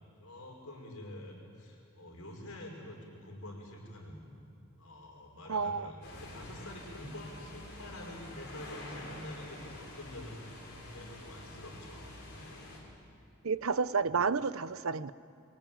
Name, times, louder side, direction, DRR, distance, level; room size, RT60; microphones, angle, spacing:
voice 1, 0.2-4.3 4.7-12.6 14.0-14.2, left 1 dB, 80° left, 1 dB, 5.1 m, -47 dB
voice 2, 5.5-5.9 13.4-15.1, right 5 dB, 70° right, 15 dB, 0.7 m, -30 dB
sound 1, 6.0-12.8, left 1 dB, 50° left, 6.4 m, -47 dB
26.0 x 23.0 x 9.1 m, 2.4 s
head